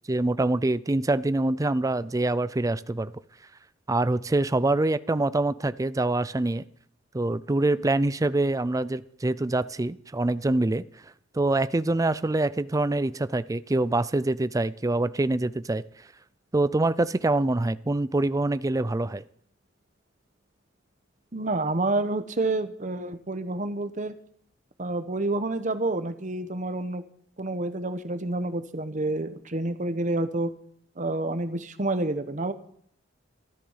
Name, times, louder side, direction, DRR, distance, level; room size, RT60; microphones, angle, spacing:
voice 1, 0.1-3.1 3.9-6.6 7.1-10.8 11.3-15.8 16.5-19.2, right 2 dB, 20° right, 15 dB, 0.4 m, -25 dB
voice 2, 21.3-24.2 24.8-27.0 27.4-30.5 31.0-32.5, right 2 dB, 40° right, 10 dB, 1.1 m, -28 dB
13.5 x 12.5 x 5.7 m, 0.64 s
head